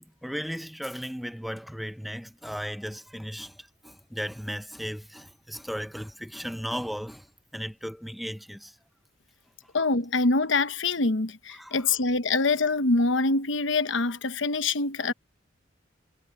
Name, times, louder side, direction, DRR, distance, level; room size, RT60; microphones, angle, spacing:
voice 1, 0.0-7.3 7.5-8.7 11.5-11.9, equal, ahead, 0.7 m, -36 dB
voice 2, 9.7-15.1, left 3 dB, 75° left, 1.1 m, -25 dB
head